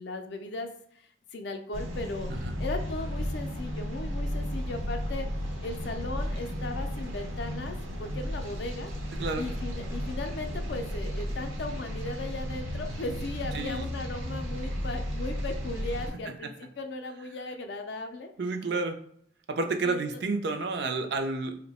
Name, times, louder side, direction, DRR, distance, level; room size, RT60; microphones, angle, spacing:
voice 1, 0.0-8.9 9.4-18.3 19.8-20.0, left 2 dB, 60° left, 6 dB, 0.4 m, -37 dB
sound 1, 1.7-16.1, equal, 90° right, 0.8 m, -34 dB
voice 2, 13.5-13.9 18.4-19.0 19.5-21.6, right 3 dB, 60° right, 5 dB, 0.4 m, -30 dB
2.7 x 2.1 x 4.0 m, 0.64 s
head